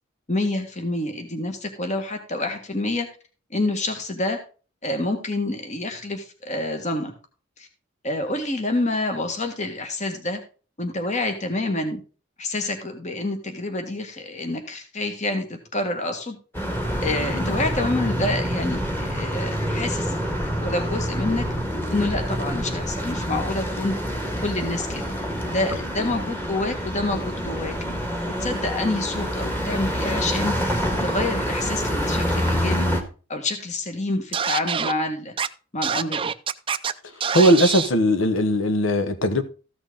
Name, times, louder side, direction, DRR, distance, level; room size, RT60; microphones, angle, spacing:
voice 1, 0.3-3.1 3.5-4.4 4.8-7.1 7.6-7.7 8.0-10.4 10.8-12.0 12.4-16.4 17.0-20.2 20.5-21.5 21.9-24.0 24.4-25.1 25.5-27.8 28.4-30.6 31.0-32.9 33.3-35.3 35.7-36.3, left 2 dB, 35° left, 1.7 m, -27 dB
sound 1, 16.5-33.0, equal, 10° left, 1.7 m, -27 dB
Scratching (performance technique), 34.3-34.9 35.4-35.5 35.8-36.9 37.2-37.9, right 7 dB, 25° right, 0.5 m, -25 dB
voice 2, 37.0-39.4, equal, 80° left, 1.1 m, -19 dB
14.5 x 6.2 x 3.8 m
head